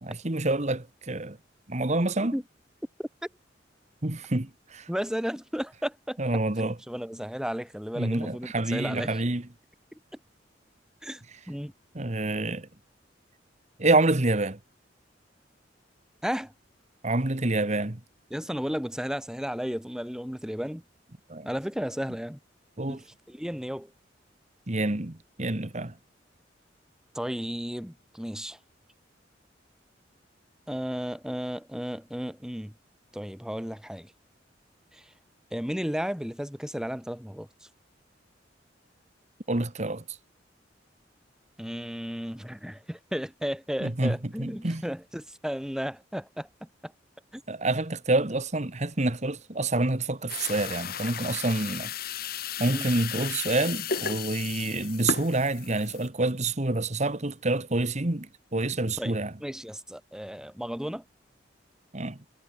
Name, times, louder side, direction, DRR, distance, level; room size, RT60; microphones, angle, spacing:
voice 1, 0.0-1.4 1.7-2.3 4.0-4.9 6.2-6.7 7.9-9.4 11.9-12.7 13.8-14.6 17.0-18.0 21.3-21.5 22.8-23.0 24.7-25.9 39.5-40.0 43.8-44.8 47.5-51.9 52.6-59.3 61.9-62.2, right 2 dB, 40° right, 1.6 m, -27 dB
voice 2, 4.9-9.2 11.0-11.7 16.2-16.5 18.3-20.8 21.4-22.4 22.9-23.9 27.2-28.6 30.7-32.7 33.1-34.1 34.9-35.1 35.5-37.5 41.6-46.9 47.3-47.4 52.7-52.9 59.0-61.0, equal, 5° right, 1.6 m, -34 dB
sound 1, 50.3-56.1, left 6 dB, 55° left, 1.7 m, -34 dB
head